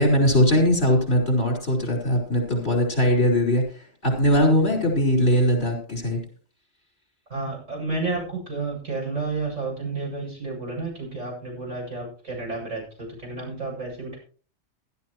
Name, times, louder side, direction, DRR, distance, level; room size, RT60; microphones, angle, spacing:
voice 1, 0.0-6.2, equal, 55° left, 1 dB, 4.9 m, -20 dB
voice 2, 7.3-14.2, right 3 dB, 85° right, -2 dB, 8.5 m, -31 dB
16.5 x 13.5 x 3.1 m, 0.41 s
omnidirectional pair, 1.2 m